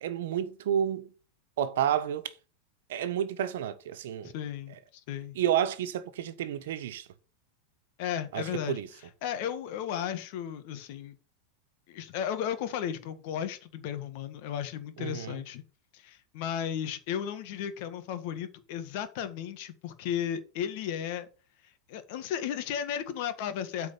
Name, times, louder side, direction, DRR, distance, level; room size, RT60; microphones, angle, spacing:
voice 1, 0.0-1.1 1.6-2.3 2.9-4.3 5.3-7.1 8.3-8.9 15.0-15.4, right 10 dB, 75° right, 1.2 m, -30 dB
voice 2, 4.2-5.4 8.0-8.8 9.2-11.1 11.9-15.6 15.9-21.3 21.9-23.9, left 9 dB, 60° left, 1.7 m, -34 dB
8.5 x 4.7 x 6.9 m
hypercardioid pair, 120°, 0 cm